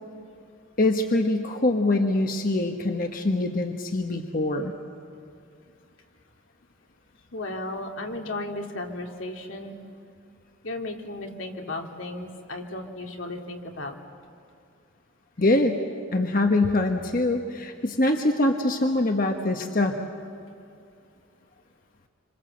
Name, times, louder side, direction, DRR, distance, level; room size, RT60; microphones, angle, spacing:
voice 1, 0.8-4.7 15.4-15.8 16.1-19.9, left 2 dB, 45° left, 4 dB, 1.3 m, -24 dB
voice 2, 7.3-9.8 10.6-14.0, left 2 dB, 80° left, 2 dB, 2.6 m, -35 dB
26.5 x 26.0 x 7.9 m, 2.5 s
head